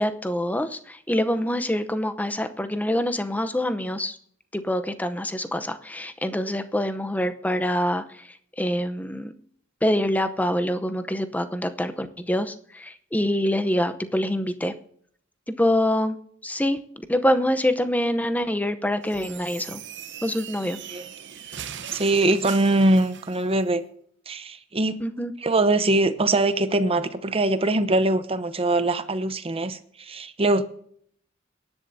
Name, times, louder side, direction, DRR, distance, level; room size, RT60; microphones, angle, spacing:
voice 1, 0.0-4.2 4.5-8.3 8.6-9.3 9.8-14.7 15.5-16.2 16.4-19.8 20.2-20.8 25.0-25.3, left 1 dB, 10° left, 0.7 m, -25 dB
sound 1, 19.0-23.5, right 9 dB, 65° right, 0.9 m, -40 dB
voice 2, 21.9-23.8 24.3-25.0 25.4-30.6, right 2 dB, 30° right, 0.8 m, -22 dB
23.5 x 11.0 x 2.7 m
head